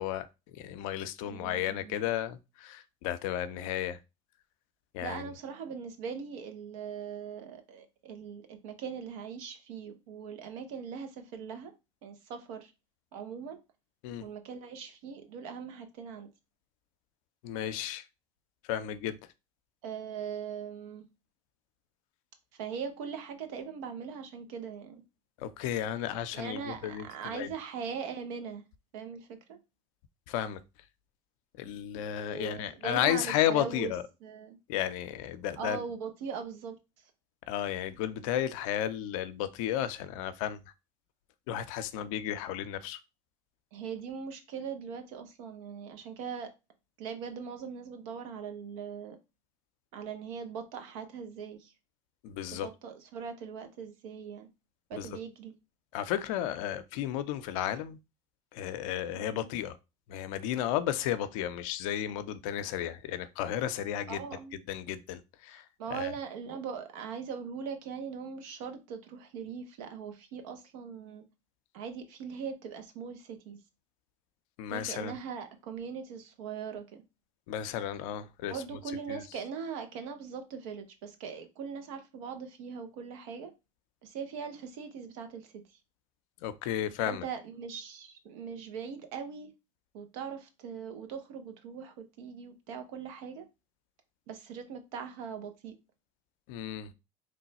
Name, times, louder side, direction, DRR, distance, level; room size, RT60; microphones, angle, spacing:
voice 1, 0.0-4.0 4.9-5.2 14.0-14.3 17.4-18.1 18.7-19.2 25.4-27.5 30.3-30.6 31.6-34.0 34.7-35.8 37.5-40.7 41.5-43.0 52.2-52.7 54.9-55.2 55.9-58.0 58.5-59.8 60.1-64.3 64.5-65.7 65.9-66.1 74.6-75.2 77.5-78.6 79.1-79.2 86.4-87.2 96.5-96.9, left 11 dB, 75° left, 0.5 m, -33 dB
voice 2, 1.3-2.0 5.0-11.7 12.0-12.7 13.1-13.6 14.2-16.3 19.8-21.1 22.5-25.0 26.3-28.7 28.9-29.6 32.2-33.9 34.2-34.6 35.6-36.8 43.7-46.5 47.0-49.2 49.9-51.7 52.5-54.5 54.9-55.5 59.1-59.5 64.1-64.6 65.5-71.2 71.7-73.6 74.7-77.0 78.5-83.5 84.0-85.5 87.1-89.5 89.9-93.5 94.3-95.7, right 6 dB, 75° right, 0.8 m, -40 dB
3.0 x 2.2 x 4.0 m
hypercardioid pair, 75°, 17 cm